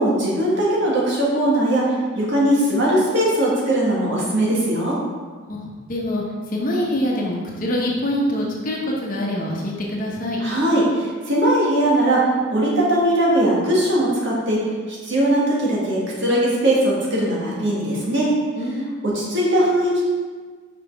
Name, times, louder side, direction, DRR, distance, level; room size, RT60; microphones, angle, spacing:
voice 1, 0.0-1.8 2.1-5.0 10.4-14.6 15.0-18.3 19.0-20.1, right 1 dB, 55° right, -5 dB, 1.6 m, -20 dB
voice 2, 5.4-6.2 6.5-10.4 18.6-19.0, left 1 dB, 40° left, -2 dB, 1.0 m, -25 dB
5.7 x 5.0 x 3.5 m, 1.5 s
head